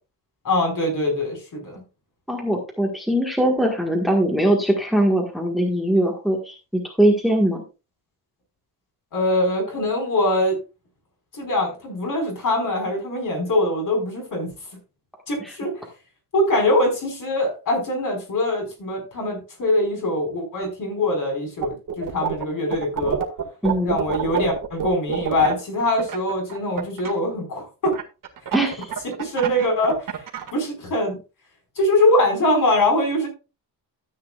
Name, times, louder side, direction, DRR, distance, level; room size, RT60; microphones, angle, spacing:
voice 1, 0.4-1.8 9.1-10.6 11.3-14.5 15.3-15.7 16.3-23.2 23.8-27.9 29.2-30.1 30.5-31.2 31.8-33.3, left 1 dB, 50° left, 2 dB, 5.0 m, -23 dB
voice 2, 2.3-7.6 15.4-15.5 23.6-24.0 28.5-28.9, right 1 dB, ahead, 1 dB, 1.6 m, -21 dB
sound 1, 21.6-22.4 22.7-27.1 27.8-30.5, right 8 dB, 55° right, 2.0 m, -27 dB
13.5 x 8.7 x 2.4 m, 0.29 s
wide cardioid pair, 170°, 40 cm